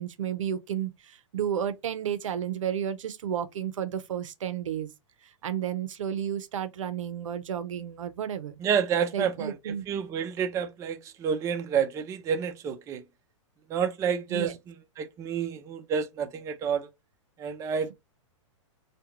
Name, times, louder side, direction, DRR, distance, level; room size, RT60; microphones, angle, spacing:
voice 1, 0.0-4.9 5.4-8.6 9.1-9.9 14.3-14.6, right 9 dB, 75° right, 0.5 m, -32 dB
voice 2, 8.6-13.0 13.7-16.9 17.4-17.9, right 7 dB, 20° right, 0.4 m, -29 dB
2.4 x 2.2 x 2.9 m
hypercardioid pair, 120°, 16 cm